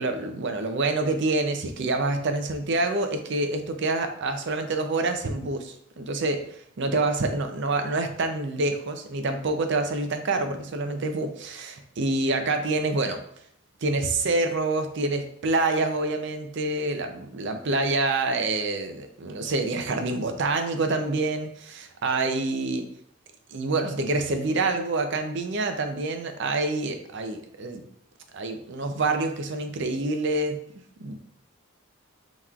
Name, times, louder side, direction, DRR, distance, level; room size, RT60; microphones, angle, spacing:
voice 1, 0.0-13.2 13.8-22.8 23.5-27.8 28.3-30.6 31.0-31.2, right 2 dB, 55° right, 6 dB, 0.5 m, -27 dB
5.6 x 3.0 x 2.4 m, 0.69 s
head